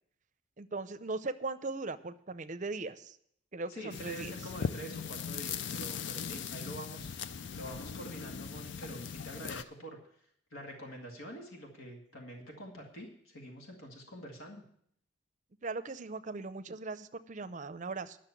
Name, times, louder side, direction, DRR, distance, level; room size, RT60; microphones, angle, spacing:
voice 1, 0.6-3.2 3.5-4.3 15.6-18.2, right 3 dB, 35° right, 11 dB, 0.6 m, -39 dB
voice 2, 3.7-14.6, right 1 dB, 80° left, 1 dB, 2.1 m, -46 dB
sound 1, 3.9-9.6, left 6 dB, 60° left, 0.4 m, -39 dB
11.0 x 6.3 x 8.4 m, 0.67 s
head